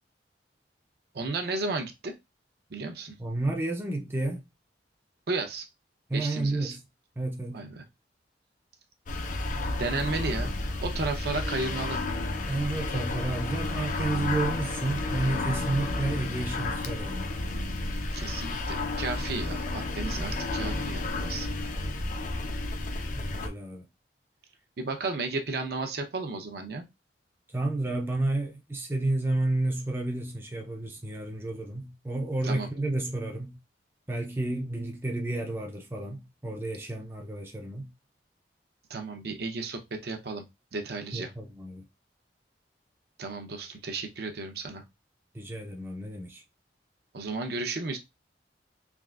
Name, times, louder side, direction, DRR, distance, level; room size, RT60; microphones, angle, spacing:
voice 1, 1.1-2.2 2.7-3.1 5.3-5.7 6.1-6.8 7.5-7.8 9.8-10.5 10.8-12.0 18.1-21.5 24.8-26.8 32.4-32.7 38.9-40.4 40.7-41.3 43.2-44.8 47.1-48.0, right 3 dB, 60° right, 0.6 m, -33 dB
voice 2, 3.2-4.4 6.1-6.8 7.2-7.6 12.5-17.3 23.2-23.9 27.5-33.6 34.1-37.9 41.1-41.8 45.3-46.4, right 2 dB, 15° right, 0.5 m, -31 dB
sound 1, 9.1-23.5, left 2 dB, 45° left, 0.5 m, -31 dB
3.4 x 2.4 x 2.4 m
head